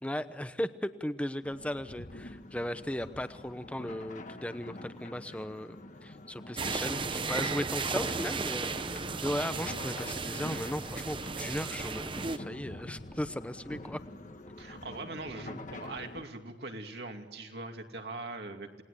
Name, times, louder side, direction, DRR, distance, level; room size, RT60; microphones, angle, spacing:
voice 1, 0.0-5.8 6.0-14.0, left 1 dB, 5° left, 11 dB, 0.9 m, -36 dB
sound 1, 1.4-16.2, left 1 dB, 45° left, 1.4 m, -46 dB
sound 2, 6.6-12.4, right 4 dB, 30° right, 0.8 m, -35 dB
voice 2, 14.6-18.8, right 2 dB, 65° right, 4 dB, 2.6 m, -41 dB
28.5 x 20.5 x 8.3 m, 1.3 s
head